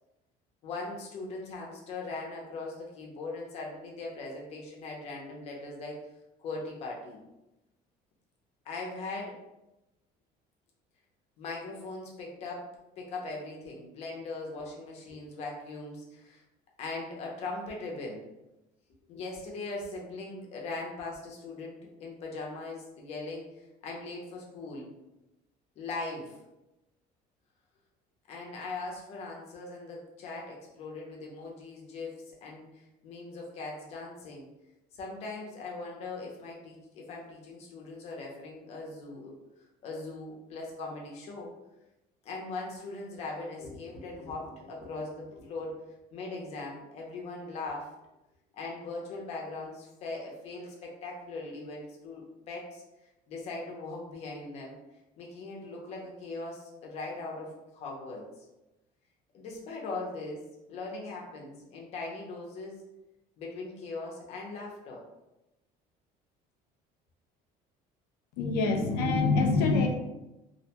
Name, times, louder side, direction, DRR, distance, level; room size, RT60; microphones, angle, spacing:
voice 1, 0.6-6.0 6.4-7.2 8.6-9.4 11.4-12.7 13.0-16.4 16.8-18.3 19.1-24.9 25.8-26.4 28.3-34.5 34.9-39.3 39.8-41.5 42.2-45.9 46.1-47.9 48.5-52.8 53.3-54.8 55.2-58.5 59.3-62.8 63.4-65.0, left 3 dB, 40° left, -1 dB, 0.6 m, -40 dB
voice 2, 68.4-69.9, left 3 dB, 85° left, 4 dB, 0.5 m, -25 dB
2.5 x 2.1 x 2.8 m, 0.96 s
cardioid pair, 180°, 16 cm